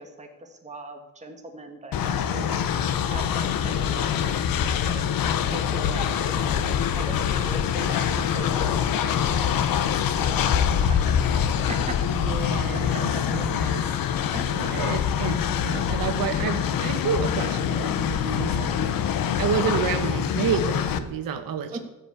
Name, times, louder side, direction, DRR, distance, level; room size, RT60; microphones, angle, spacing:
voice 1, 0.0-2.6 3.1-4.3 4.9-5.0 5.4-10.4 10.8-12.2 12.7-13.2 14.3-14.7 21.7-21.8, right 2 dB, 20° right, 3 dB, 1.7 m, -39 dB
Train, 1.9-21.0, left 8 dB, 80° left, 0.9 m, -25 dB
voice 2, 12.1-21.8, right 7 dB, 85° right, 7 dB, 1.2 m, -30 dB
14.5 x 5.4 x 8.3 m, 1.0 s
cardioid pair, 135°, 34 cm